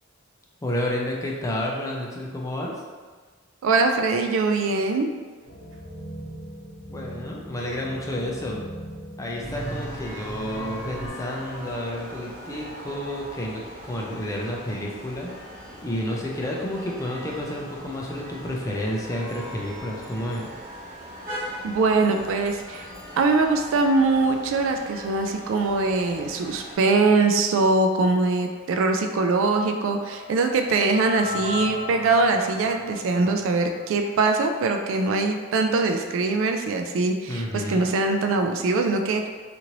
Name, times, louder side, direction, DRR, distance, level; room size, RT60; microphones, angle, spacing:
voice 1, 0.6-2.8 6.9-8.6 9.2-13.6 13.9-15.3 15.8-20.5 37.3-37.9, left 1 dB, 15° left, -2 dB, 0.4 m, -30 dB
voice 2, 3.6-5.1 21.6-39.3, right 3 dB, 70° right, 4 dB, 0.3 m, -22 dB
sound 1, 5.4-11.1, right 1 dB, 70° left, 0.9 m, -38 dB
sound 2, 9.4-26.7, equal, 45° right, 1.2 m, -40 dB
sound 3, 29.6-34.5, left 4 dB, 25° right, 1.1 m, -37 dB
2.8 x 2.6 x 2.9 m, 1.5 s
head